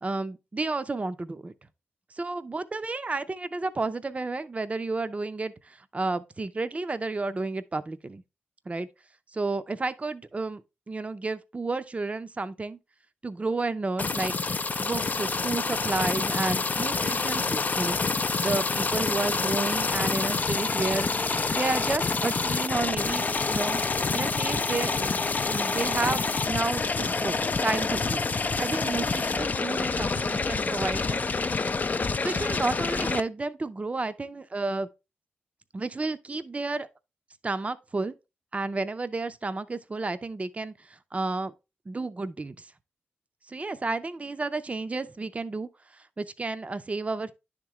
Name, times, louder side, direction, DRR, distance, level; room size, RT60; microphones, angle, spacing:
voice 1, 0.0-1.5 2.1-8.2 8.7-8.9 9.3-12.8 13.2-14.3 14.8-18.0 18.4-21.1 21.5-23.8 24.1-28.2 28.6-31.2 32.2-34.9 35.7-36.9 37.4-38.1 38.5-41.5 41.9-42.7 43.5-47.3, right 3 dB, 30° right, 0.5 m, -31 dB
sound 1, 14.0-33.2, left 4 dB, 40° left, 0.4 m, -27 dB
10.0 x 3.7 x 3.0 m
cardioid pair, 50°, 4 cm